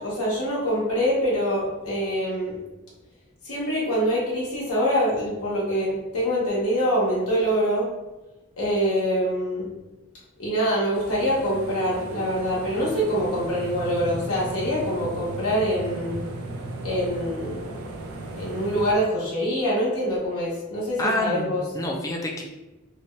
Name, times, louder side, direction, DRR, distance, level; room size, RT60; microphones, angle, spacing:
voice 1, 0.0-2.5 3.4-7.9 8.6-9.7 10.4-16.2 16.8-17.8 18.3-21.9, equal, 90° left, -6 dB, 0.8 m, -25 dB
sound 1, 10.9-18.9, right 2 dB, 90° right, 0.4 m, -36 dB
voice 2, 21.0-22.4, left 2 dB, 15° left, 0 dB, 0.3 m, -27 dB
2.7 x 2.2 x 3.0 m, 1.1 s
head